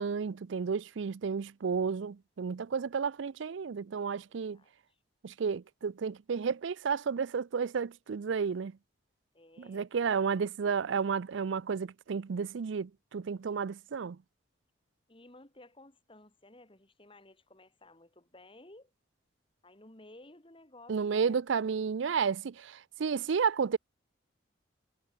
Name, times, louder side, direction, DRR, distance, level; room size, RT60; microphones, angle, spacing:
voice 1, 0.0-4.6 5.2-8.7 9.6-14.2 20.9-23.8, right 6 dB, 75° right, 0.4 m, -32 dB
voice 2, 4.5-5.0 9.3-9.9 15.1-18.9 19.6-21.4, left 2 dB, 25° left, 2.1 m, -56 dB
head